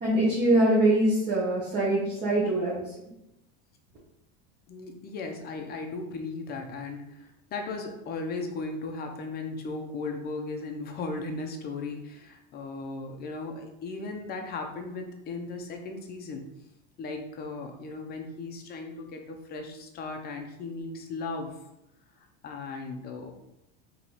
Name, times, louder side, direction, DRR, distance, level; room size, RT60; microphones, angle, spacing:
voice 1, 0.0-2.8, right 1 dB, 30° right, -7 dB, 1.0 m, -23 dB
voice 2, 4.7-16.5 17.0-21.6 22.2-23.3, left 3 dB, 30° left, 4 dB, 0.5 m, -37 dB
3.9 x 3.0 x 2.9 m, 0.87 s
supercardioid pair, 140°, 34 cm